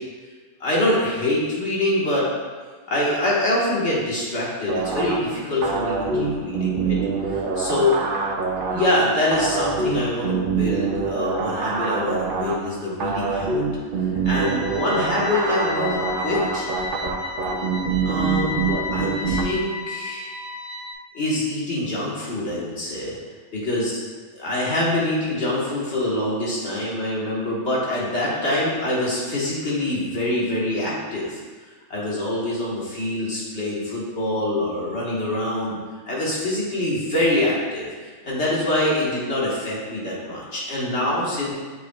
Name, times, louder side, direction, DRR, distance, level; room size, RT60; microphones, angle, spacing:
voice 1, 0.6-2.2 2.9-7.0 7.6-8.0 8.7-13.6 14.2-16.7 18.0-20.3 21.1-23.1 23.5-23.9 24.4-31.4 31.9-35.8 36.1-37.9 38.2-41.5, left 1 dB, 50° left, -6 dB, 1.7 m, -25 dB
sound 1, 4.7-19.4, right 4 dB, 60° right, 0.6 m, -25 dB
sound 2, 14.2-20.9, left 4 dB, 40° right, 1.0 m, -33 dB
7.5 x 5.6 x 2.3 m, 1.4 s
omnidirectional pair, 1.6 m